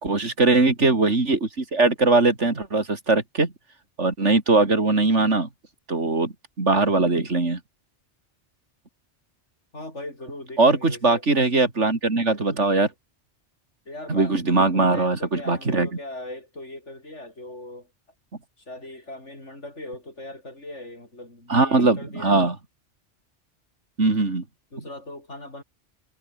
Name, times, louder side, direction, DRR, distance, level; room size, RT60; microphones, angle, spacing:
voice 1, 0.0-3.5 4.0-5.5 5.9-7.6 10.6-12.9 14.1-15.9 21.5-22.6 24.0-24.4, right 3 dB, 85° right, 3.7 m, -21 dB
voice 2, 9.7-11.4 13.9-17.9 18.6-22.5 24.7-25.6, left 1 dB, 85° left, 7.2 m, -39 dB
omnidirectional pair, 1.2 m